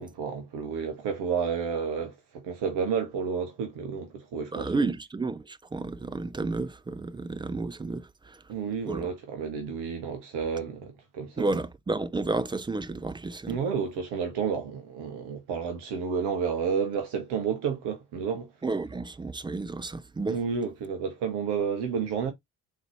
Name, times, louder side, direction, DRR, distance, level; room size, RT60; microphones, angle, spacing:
voice 1, 0.0-4.9 8.5-11.5 13.5-18.5 20.3-22.3, right 6 dB, 65° right, 1.1 m, -31 dB
voice 2, 4.5-8.4 8.9-9.1 11.4-13.6 18.6-20.4, right 3 dB, 10° right, 0.4 m, -31 dB
4.0 x 3.1 x 2.9 m
figure-of-eight pair, 40°, 43 cm